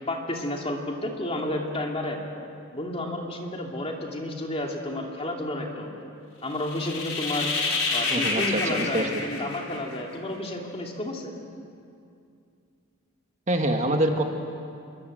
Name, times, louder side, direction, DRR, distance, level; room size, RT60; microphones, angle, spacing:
voice 1, 0.1-2.3 2.7-5.9 6.4-7.5 7.9-11.3, left 1 dB, 25° left, 1 dB, 2.7 m, -31 dB
sound 1, 6.5-10.1, left 3 dB, 70° left, 5.4 m, -28 dB
voice 2, 8.1-9.1 13.5-14.2, right 1 dB, 30° right, 4 dB, 1.6 m, -25 dB
27.5 x 23.0 x 7.8 m, 2.5 s
head